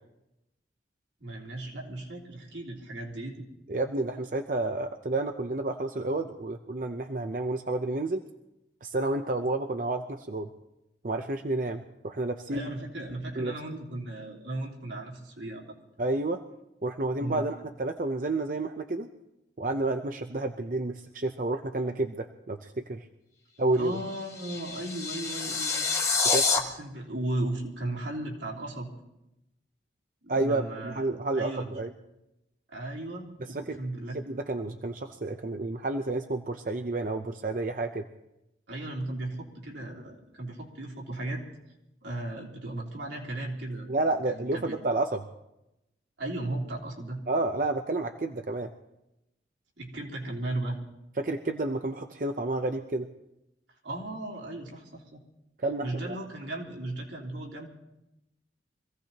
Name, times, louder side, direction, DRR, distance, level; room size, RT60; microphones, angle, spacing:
voice 1, 1.2-3.4 12.5-15.7 17.2-17.4 23.7-25.8 26.6-28.9 30.2-31.0 31.3-31.8 32.7-34.2 38.7-41.4 42.0-43.9 44.2-44.8 46.2-47.2 49.8-50.8 53.8-55.2 55.8-57.7, right 1 dB, 85° right, -2 dB, 3.4 m, -36 dB
voice 2, 3.7-8.2 8.8-10.5 11.0-12.7 13.4-13.5 16.0-16.4 16.8-19.1 19.6-23.1 23.6-23.9 26.2-26.5 30.3-31.9 33.4-33.8 34.1-38.0 43.9-45.2 47.3-48.7 51.2-53.1 55.6-56.2, right 2 dB, 45° right, 5 dB, 0.6 m, -30 dB
sound 1, 23.9-26.6, left 4 dB, 15° left, 1.2 m, -28 dB
25.0 x 16.5 x 3.0 m, 0.91 s
head